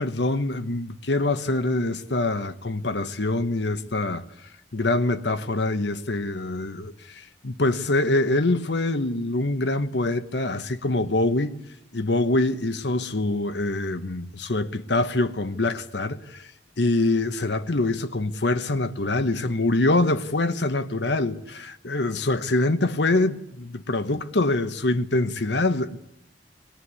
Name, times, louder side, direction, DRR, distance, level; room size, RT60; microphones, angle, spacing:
voice 1, 0.0-4.2 4.7-11.5 11.9-16.5 16.8-26.0, left 2 dB, 70° left, 1.1 m, -24 dB
22.0 x 19.5 x 9.8 m
head